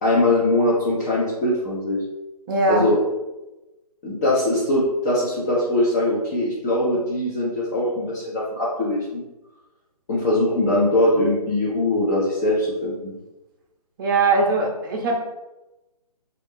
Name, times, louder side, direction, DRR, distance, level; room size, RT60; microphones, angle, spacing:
voice 1, 0.0-2.0 2.7-3.0 4.0-9.2 10.1-13.1, left 1 dB, 25° left, -7 dB, 0.6 m, -21 dB
voice 2, 2.5-2.8 14.0-15.2, right 3 dB, 30° right, 1 dB, 0.7 m, -20 dB
3.0 x 2.5 x 3.5 m, 1.0 s
figure-of-eight pair, 145°, 20 cm